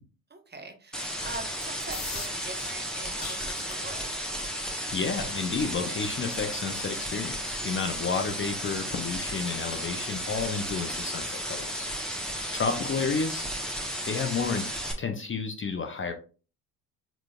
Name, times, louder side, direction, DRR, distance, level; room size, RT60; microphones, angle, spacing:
voice 1, 0.3-4.1 7.6-7.8 12.1-12.4, right 3 dB, 20° right, 6 dB, 1.0 m, -43 dB
sound 1, 0.9-14.9, equal, ahead, 1.3 m, -34 dB
sound 2, 1.7-13.5, left 4 dB, 45° left, 1.6 m, -49 dB
voice 2, 4.9-11.9 12.5-13.4 14.1-14.7 15.0-16.1, left 5 dB, 25° left, 5 dB, 0.7 m, -31 dB
4.6 x 3.9 x 2.4 m, 0.36 s
hypercardioid pair, 60°, 46 cm